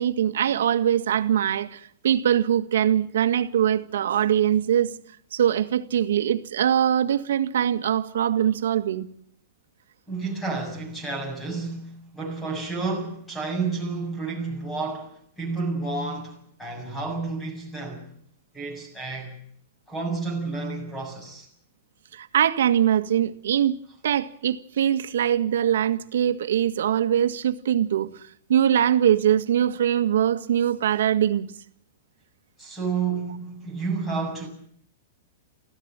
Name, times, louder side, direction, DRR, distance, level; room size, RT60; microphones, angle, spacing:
voice 1, 0.0-4.9 5.3-9.1 22.1-23.8 24.0-28.1 28.5-31.5, right 10 dB, 85° right, 1.8 m, -22 dB
voice 2, 10.1-18.1 18.5-19.4 19.9-21.5 32.6-34.5, right 4 dB, 10° left, 7.4 m, -30 dB
24.5 x 15.5 x 9.0 m
supercardioid pair, 160°, 0 cm